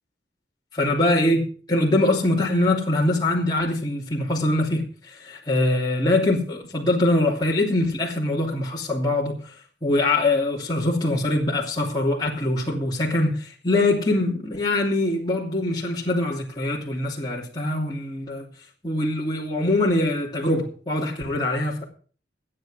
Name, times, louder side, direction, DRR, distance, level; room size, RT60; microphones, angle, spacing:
voice 1, 0.8-1.4 1.7-9.3 9.8-18.4 18.8-21.8, left 2 dB, 25° left, 2.9 m, -23 dB
16.0 x 9.5 x 5.1 m
head